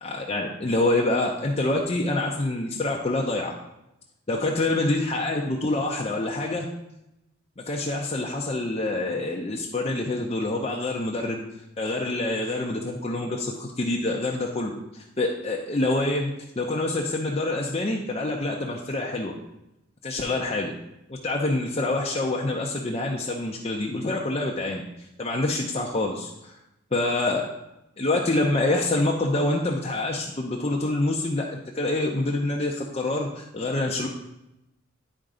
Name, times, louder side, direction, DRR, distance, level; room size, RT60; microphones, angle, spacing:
voice 1, 0.0-3.5 4.3-6.6 7.6-11.4 11.8-19.3 20.0-20.7 21.1-26.5 26.9-27.5 28.0-34.1, left 2 dB, 30° left, -1 dB, 0.6 m, -26 dB
10.5 x 4.4 x 3.8 m, 0.88 s
head